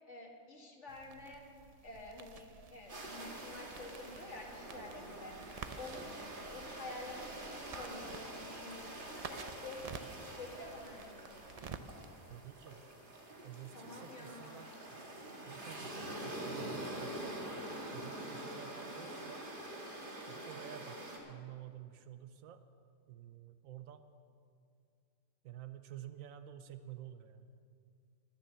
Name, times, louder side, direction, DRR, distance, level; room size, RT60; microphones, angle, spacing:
voice 1, 0.0-1.4 1.8-5.3 5.8-6.2 6.5-11.7 13.7-14.8, left 2 dB, 60° left, -1 dB, 2.1 m, -49 dB
sound 1, 0.9-12.3, right 5 dB, 65° right, 0.3 m, -52 dB
sound 2, 2.9-21.2, right 1 dB, 40° right, 1.8 m, -46 dB
voice 2, 12.3-12.8 13.4-15.0 15.5-17.5 17.9-19.4 20.3-21.0 21.3-22.6 23.1-24.0 25.4-27.5, right 11 dB, 85° right, 10 dB, 1.0 m, -50 dB
13.0 x 9.7 x 6.8 m, 2.3 s
omnidirectional pair, 1.4 m